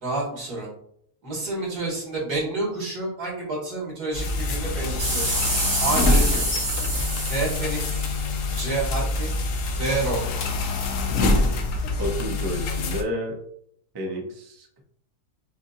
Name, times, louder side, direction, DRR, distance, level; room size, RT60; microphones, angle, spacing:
voice 1, 0.0-0.7 1.2-5.3 5.8-6.5 7.3-8.1 8.5-9.3 9.8-10.2, right 2 dB, 75° right, -4 dB, 2.7 m, -29 dB
sound 1, 4.1-13.0, left 2 dB, 65° left, 1.0 m, -25 dB
sound 2, 5.0-8.6 9.3-9.4, right 2 dB, 60° right, 2.6 m, -27 dB
voice 2, 12.0-13.4 13.9-14.8, equal, 25° right, 0 dB, 0.6 m, -31 dB
6.9 x 2.7 x 2.6 m, 0.67 s
omnidirectional pair, 1.6 m